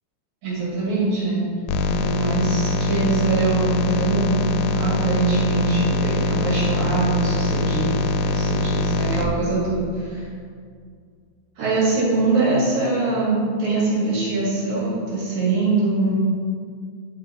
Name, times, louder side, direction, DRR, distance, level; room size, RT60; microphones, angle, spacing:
voice 1, 0.4-1.5 1.8-10.3 11.6-16.2, right 3 dB, 70° right, -6 dB, 3.2 m, -23 dB
sound 1, 1.7-9.3, left 2 dB, 80° left, 1.8 m, -23 dB
10.0 x 3.4 x 4.0 m, 2.1 s
omnidirectional pair, 3.5 m